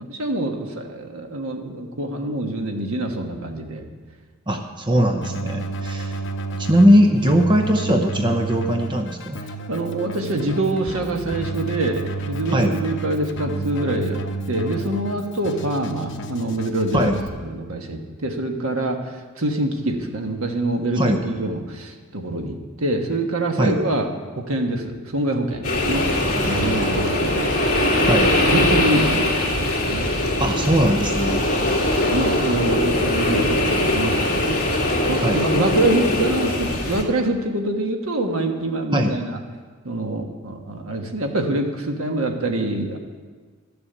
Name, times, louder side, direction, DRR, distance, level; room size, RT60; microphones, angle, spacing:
voice 1, 0.1-3.8 4.9-5.0 9.7-14.2 14.5-24.1 24.4-27.6 28.0-30.1 31.3-31.5 31.9-39.4 39.8-43.0, right 1 dB, 75° right, 4 dB, 1.4 m, -25 dB
voice 2, 4.5-6.2 6.6-9.4 12.5-12.8 16.9-17.2 21.0-21.2 23.6-23.8 26.4-27.0 28.0-28.3 30.4-31.5 35.2-35.4 38.9-39.1, equal, 20° right, 4 dB, 0.7 m, -20 dB
Keyboard (musical), 5.2-17.3, right 3 dB, 55° left, 1.0 m, -31 dB
sound 1, 25.6-37.0, left 1 dB, 40° left, 2.3 m, -21 dB
12.5 x 7.1 x 8.1 m, 1.5 s
head